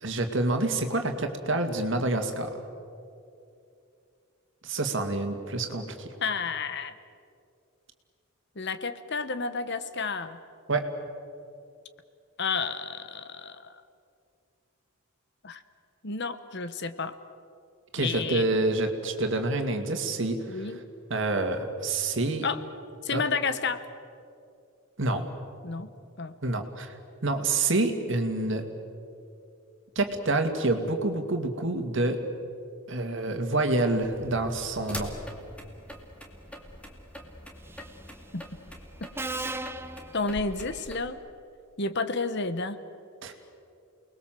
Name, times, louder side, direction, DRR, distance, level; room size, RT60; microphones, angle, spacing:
voice 1, 0.0-2.6 4.6-6.1 10.7-10.9 17.9-20.7 21.1-22.5 23.1-23.2 25.0-25.3 26.4-27.0 27.2-28.7 30.0-32.2 32.9-35.1 43.2-43.3, right 2 dB, 60° right, 5 dB, 2.4 m, -27 dB
voice 2, 6.2-6.9 8.5-10.4 12.4-13.8 15.4-15.6 16.0-17.1 18.0-18.4 20.5-20.8 22.4-22.6 23.0-23.8 25.6-25.9 26.2-26.3 38.3-38.4 39.4-39.5 40.1-41.2 41.8-42.8, left 4 dB, 55° left, 12 dB, 1.1 m, -31 dB
sound 1, 34.0-41.1, equal, 5° left, 2.4 m, -44 dB
Subway metro underground, 37.7-38.0 39.2-40.9, right 2 dB, 10° right, 0.7 m, -37 dB
29.0 x 20.5 x 7.7 m, 2.5 s
head